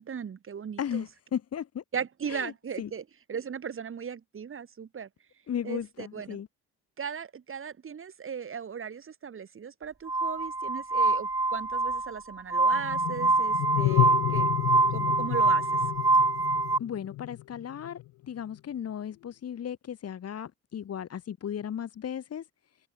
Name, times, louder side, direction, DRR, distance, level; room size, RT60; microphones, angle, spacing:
voice 1, 0.0-1.0 1.9-3.0 3.3-5.1 5.6-6.4 7.0-14.5 14.9-15.9, right 7 dB, 45° right, 2.2 m, -37 dB
voice 2, 0.8-1.8 2.3-2.5 2.8-2.9 5.5-6.5 16.8-22.5, left 9 dB, 55° left, 2.2 m, -35 dB
Glass, 10.1-16.8, right 3 dB, 10° right, 0.7 m, -25 dB
sound 1, 12.7-18.1, left 17 dB, 75° left, 0.5 m, -31 dB
cardioid pair, 90°, 30 cm